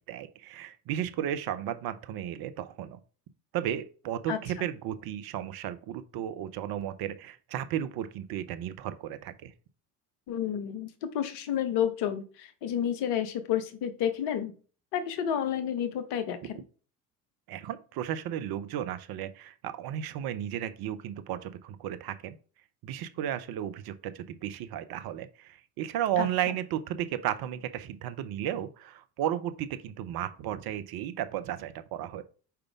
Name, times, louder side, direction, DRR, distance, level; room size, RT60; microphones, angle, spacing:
voice 1, 0.1-3.0 3.5-9.5 17.5-22.4 22.8-32.2, right 11 dB, 50° right, 11 dB, 0.7 m, -34 dB
voice 2, 4.3-4.7 10.3-14.5 14.9-16.6 26.2-26.6, left 9 dB, 55° left, 10 dB, 1.1 m, -31 dB
5.7 x 4.9 x 3.6 m, 0.39 s
figure-of-eight pair, 60°, 48 cm